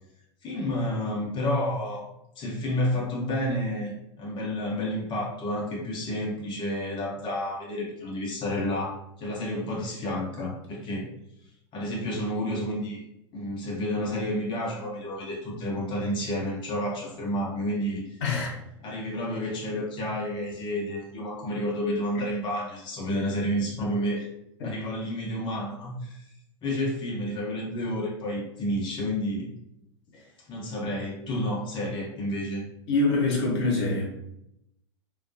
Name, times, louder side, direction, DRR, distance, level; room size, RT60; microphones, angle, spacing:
voice 1, 0.4-2.0 2.4-3.9 4.2-11.1 11.7-13.0 13.3-18.0 18.8-24.3 24.6-26.3 26.6-29.5 30.5-32.7, left 1 dB, 35° left, -3 dB, 0.8 m, -30 dB
voice 2, 18.2-18.5 24.6-24.7 30.1-30.2 32.9-34.1, left 3 dB, 60° left, -2 dB, 0.9 m, -25 dB
2.3 x 2.2 x 2.6 m, 0.79 s
figure-of-eight pair, 85°, 15 cm